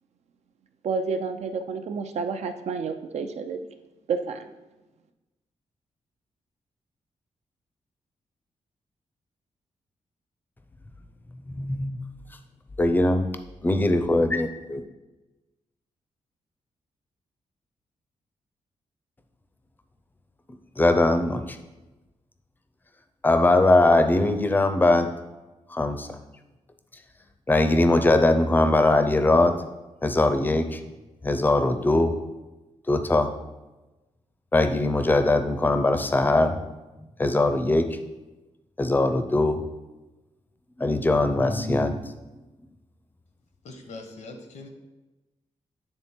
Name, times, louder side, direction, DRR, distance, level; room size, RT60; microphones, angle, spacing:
voice 1, 0.8-3.6 4.1-4.5, right 5 dB, 70° right, 7 dB, 0.5 m, -30 dB
voice 2, 11.5-12.0 12.8-13.3 13.6-14.8 20.8-21.6 23.2-25.1 25.7-26.2 27.5-29.5 30.0-30.8 31.2-32.1 32.9-33.3 34.5-36.5 37.2-37.9 38.8-39.6 40.8-42.2, left 2 dB, 15° left, 7 dB, 0.5 m, -21 dB
voice 3, 43.6-44.7, left 2 dB, 80° left, 5 dB, 1.0 m, -41 dB
8.8 x 3.5 x 4.3 m, 1.1 s
wide cardioid pair, 115°, 12 cm